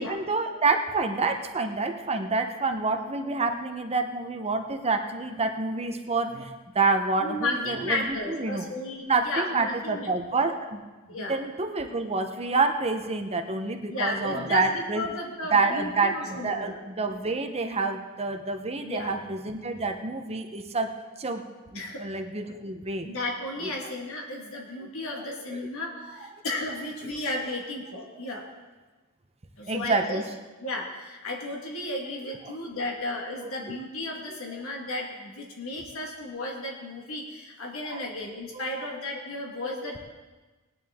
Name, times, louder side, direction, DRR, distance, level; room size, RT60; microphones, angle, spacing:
voice 1, 0.0-8.7 9.0-10.8 11.2-15.0 15.5-20.9 21.2-21.4 21.7-23.1 23.6-23.9 25.1-25.2 25.5-25.7 26.1-26.2 27.0-27.1 29.7-30.2 32.5-32.6 33.3-33.4 37.8-38.0 38.5-38.9 39.6-40.0, right 3 dB, 30° right, 6 dB, 0.9 m, -28 dB
voice 2, 7.2-10.1 11.1-11.4 13.9-16.8 18.8-19.1 21.7-22.0 23.0-28.5 29.6-30.2 30.6-40.0, left 2 dB, 65° left, 0 dB, 1.7 m, -34 dB
18.5 x 10.5 x 3.6 m, 1.3 s
head